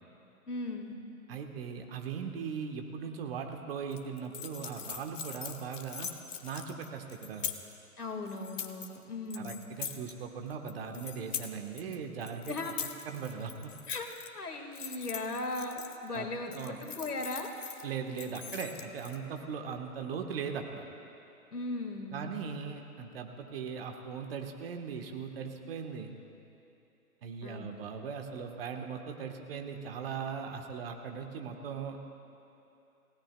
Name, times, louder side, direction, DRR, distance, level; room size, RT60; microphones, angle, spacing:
voice 1, 0.5-1.0 8.0-9.6 12.5-12.7 13.9-14.1 14.3-17.5 21.5-22.4 27.4-27.7, left 2 dB, 80° left, 4 dB, 1.9 m, -37 dB
voice 2, 1.3-6.1 6.4-7.5 9.3-12.5 13.0-13.7 16.1-16.3 16.5-16.8 17.8-20.9 22.1-26.1 27.2-32.0, right 6 dB, 40° right, 4 dB, 1.2 m, -39 dB
sound 1, 3.9-7.8 8.3-9.0 9.3-10.1 10.5-12.0 12.2-14.3 14.7-16.2 16.5-17.8 18.2-19.2, left 8 dB, 55° left, 1.0 m, -42 dB
28.5 x 16.5 x 2.2 m, 2.9 s
figure-of-eight pair, 135°, 45 cm